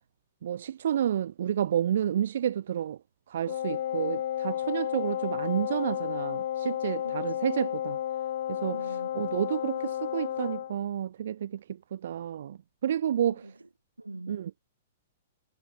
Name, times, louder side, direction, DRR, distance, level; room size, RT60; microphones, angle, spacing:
voice 1, 0.4-3.0 3.3-8.0 8.5-8.8 9.2-11.6 11.9-13.4 14.3-14.6, right 10 dB, 60° right, 0.6 m, -30 dB
Wind instrument woodwind instrument, 3.5-10.8, left 11 dB, 60° left, 1.3 m, -32 dB
voice 2, 7.0-7.6 8.7-9.2 13.2-13.7 14.0-14.4, right 2 dB, 90° right, 5.4 m, -44 dB
figure-of-eight pair, 110°, 0 cm